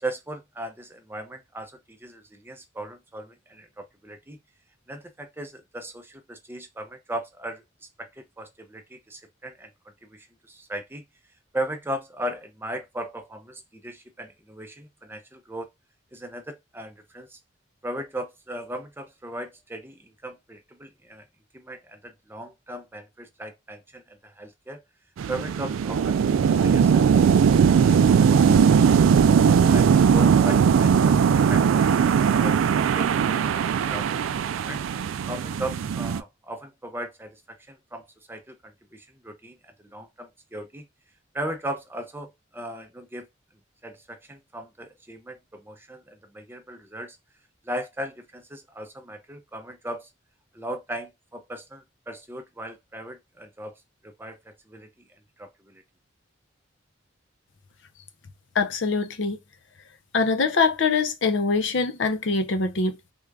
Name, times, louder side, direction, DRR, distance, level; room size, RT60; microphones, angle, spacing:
voice 1, 0.0-4.4 4.9-7.6 8.0-9.7 10.1-11.0 11.5-15.7 16.1-17.4 17.8-21.2 21.5-24.8 25.3-28.6 28.8-29.0 29.7-31.2 31.5-32.1 32.4-32.6 32.9-33.6 33.9-34.2 34.7-34.8 35.3-40.8 41.3-43.3 43.8-47.2 47.6-50.1 50.5-53.7 54.0-54.9 55.4-55.8, right 1 dB, 10° right, 0.5 m, -37 dB
sound 1, 25.2-36.2, right 7 dB, 90° right, 0.3 m, -19 dB
voice 2, 58.5-59.4 60.1-63.0, left 4 dB, 65° left, 0.6 m, -23 dB
3.6 x 2.4 x 3.2 m
head